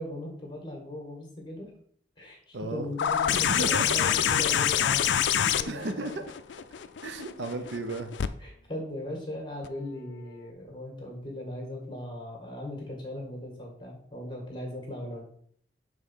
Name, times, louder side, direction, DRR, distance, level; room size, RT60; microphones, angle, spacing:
voice 1, 0.0-1.7 2.2-6.2 8.4-15.2, left 1 dB, 25° left, 0 dB, 1.6 m, -38 dB
voice 2, 2.5-2.9 3.3-3.9 4.1-4.4 5.7-6.4 7.0-8.1, right 2 dB, 85° right, 7 dB, 0.7 m, -34 dB
sound 1, 3.0-8.3 9.6-9.7, left 9 dB, 85° left, 0.4 m, -26 dB
5.4 x 3.6 x 5.5 m, 0.63 s
head